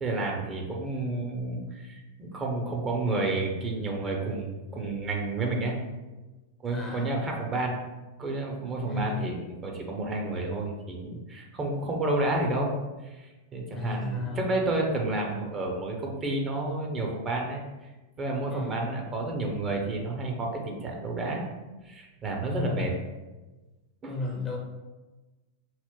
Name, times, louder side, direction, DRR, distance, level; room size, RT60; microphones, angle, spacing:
voice 1, 0.0-5.8 6.6-7.8 8.2-12.8 13.0-17.9 18.2-21.5 21.8-22.9 24.0-24.1, right 2 dB, 25° right, 0 dB, 0.7 m, -30 dB
voice 2, 6.7-7.1 8.8-9.3 13.7-14.7 18.5-18.8 22.5-22.9 24.1-24.6, left 2 dB, 20° left, 1 dB, 0.7 m, -33 dB
4.3 x 2.1 x 3.7 m, 1.2 s
figure-of-eight pair, 90°, 0 cm